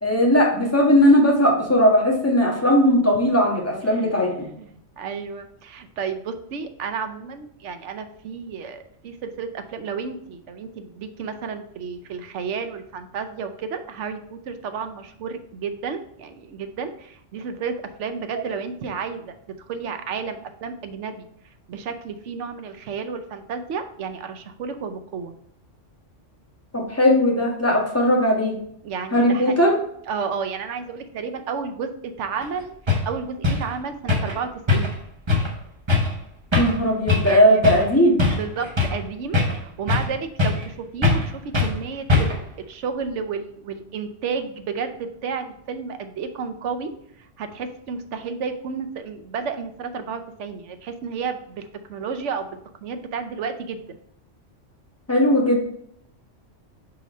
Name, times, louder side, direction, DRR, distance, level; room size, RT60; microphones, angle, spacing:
voice 1, 0.0-4.5 26.7-28.5 29.1-29.8 36.6-38.1 55.1-55.6, equal, 10° left, -3 dB, 1.3 m, -18 dB
voice 2, 3.9-4.7 5.0-17.7 18.0-19.3 19.7-21.3 21.7-25.3 28.8-29.6 30.1-32.7 33.1-34.9 37.2-37.6 38.3-46.9 47.2-53.8, right 5 dB, 75° right, 8 dB, 1.0 m, -32 dB
sound 1, 32.4-32.5 32.9-33.1 33.4-33.7 34.1-34.4 34.7-35.0 35.3-35.5 35.9-36.1 36.5-36.8 37.1-37.3 37.6-37.9 38.2-39.0 39.3-40.1 40.4-40.7 41.0-41.3 41.5-41.8 42.1-42.5, left 3 dB, 25° right, 1.0 m, -21 dB
4.7 x 3.9 x 5.2 m, 0.69 s
omnidirectional pair, 1.3 m